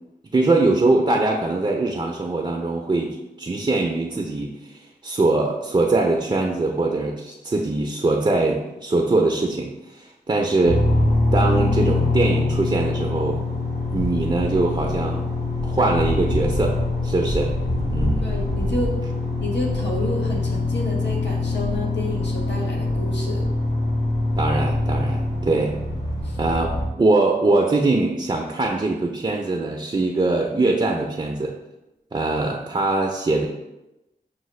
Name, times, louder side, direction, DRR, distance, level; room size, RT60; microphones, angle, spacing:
voice 1, 0.3-10.8 11.3-13.4 13.9-15.3 15.6-17.5 17.9-18.3 24.4-25.7 26.4-31.5 32.1-33.5, right 2 dB, 30° right, 1 dB, 0.4 m, -22 dB
sound 1, 10.6-26.9, left 2 dB, 60° left, 1.3 m, -24 dB
voice 2, 18.2-18.9 19.4-23.5 26.2-26.4, left 1 dB, 85° left, -2 dB, 1.0 m, -30 dB
6.3 x 2.1 x 3.1 m, 0.98 s
wide cardioid pair, 60°, 18 cm